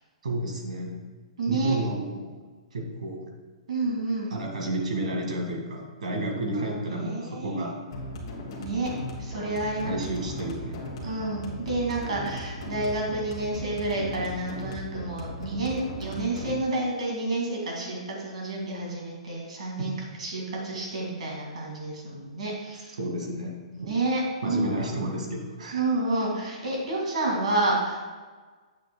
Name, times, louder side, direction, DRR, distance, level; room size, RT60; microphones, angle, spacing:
voice 1, 0.2-1.0 1.5-2.3 2.7-3.3 4.3-7.8 9.8-10.8 19.8-19.9 23.0-23.6 24.4-25.8, right 1 dB, 85° right, 2 dB, 1.8 m, -31 dB
voice 2, 1.4-1.8 3.7-4.4 6.5-7.7 8.6-8.9 9.2-10.1 11.0-19.9 20.2-22.9 23.7-24.7 25.7-28.0, right 2 dB, 65° right, -1 dB, 2.0 m, -29 dB
sound 1, 7.9-16.5, left 1 dB, 40° left, 1.3 m, -37 dB
8.2 x 7.4 x 2.2 m, 1.4 s
hypercardioid pair, 180°, 4 cm